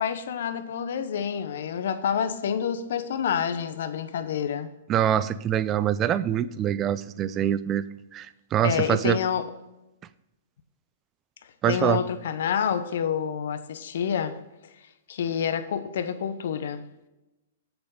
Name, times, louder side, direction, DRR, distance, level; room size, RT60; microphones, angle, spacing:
voice 1, 0.0-4.7 8.6-9.5 11.7-14.4 15.1-16.8, left 8 dB, 70° left, 0.9 m, -28 dB
voice 2, 4.9-7.9 8.1-9.2 11.6-12.0, right 10 dB, 25° right, 0.5 m, -24 dB
7.8 x 7.0 x 5.5 m
hypercardioid pair, 125°, 0 cm